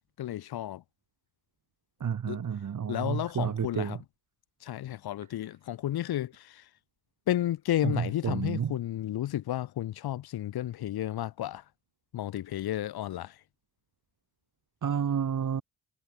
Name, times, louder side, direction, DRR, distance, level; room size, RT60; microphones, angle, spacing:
voice 1, 0.2-0.8 2.3-2.4 2.9-4.0 4.6-6.7 7.3-11.6 12.1-13.4, left 13 dB, 85° left, 8.0 m, -32 dB
voice 2, 2.0-4.0 7.8-8.7 14.8-15.6, right 8 dB, 55° right, 3.2 m, -30 dB
cardioid pair, 70°, 36 cm